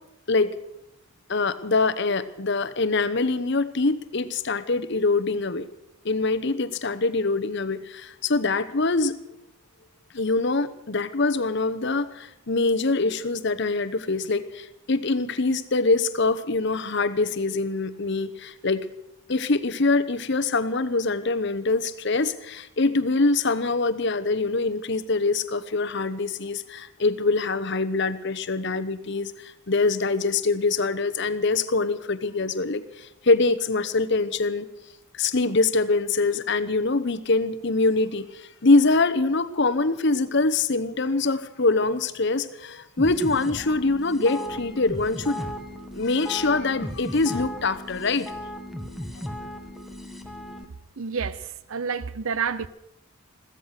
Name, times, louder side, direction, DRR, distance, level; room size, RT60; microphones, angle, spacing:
voice 1, 1.3-5.6 6.0-9.2 10.1-18.9 19.3-34.7 35.1-45.4 45.9-48.3 49.2-49.5, left 3 dB, 55° left, 13 dB, 0.9 m, -24 dB
sound 1, 43.0-50.6, left 1 dB, ahead, 1.3 m, -36 dB
voice 2, 51.0-52.7, right 6 dB, 75° right, 17 dB, 0.7 m, -29 dB
15.5 x 14.0 x 6.6 m, 0.86 s
head